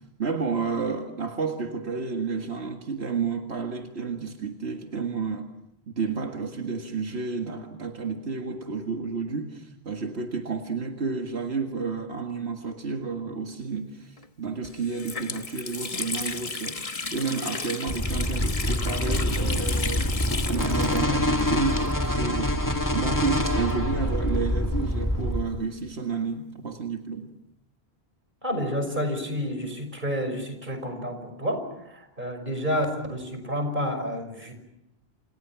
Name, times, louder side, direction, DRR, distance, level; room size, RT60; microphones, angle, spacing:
voice 1, 0.2-5.5 5.9-22.5 22.9-27.3, right 5 dB, 90° right, 3 dB, 2.1 m, -31 dB
Water tap faucet, 14.2-14.3 14.6-22.4 22.6-22.7 23.6-25.1, left 4 dB, 35° left, 1.1 m, -34 dB
sound 1, 17.9-25.4, left 1 dB, 20° left, 2.1 m, -26 dB
voice 2, 28.4-34.5, equal, 50° right, 6 dB, 6.1 m, -30 dB
28.5 x 28.5 x 6.0 m, 0.84 s
omnidirectional pair, 1.1 m